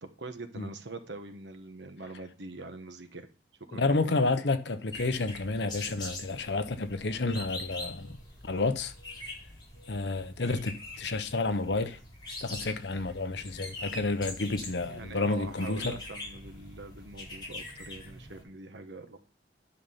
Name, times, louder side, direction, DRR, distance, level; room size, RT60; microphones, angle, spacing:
voice 1, 0.0-3.3 3.7-4.3 14.9-19.2, right 2 dB, 75° right, 1.2 m, -43 dB
voice 2, 3.7-8.2 8.4-8.9 9.9-12.0 12.4-16.0, left 3 dB, 65° left, 0.8 m, -30 dB
sound 1, 4.9-18.4, left 2 dB, 25° left, 4.2 m, -44 dB
10.0 x 5.4 x 5.6 m
head